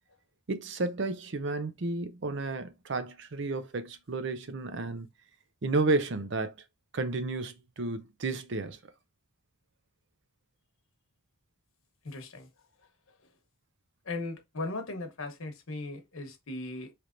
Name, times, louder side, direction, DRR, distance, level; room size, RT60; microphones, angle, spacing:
voice 1, 0.5-5.1 5.6-6.5 6.9-8.8, right 3 dB, 55° right, 0.6 m, -32 dB
voice 2, 12.0-12.5 14.0-16.9, left 2 dB, 75° left, 1.1 m, -38 dB
4.4 x 3.4 x 2.5 m
head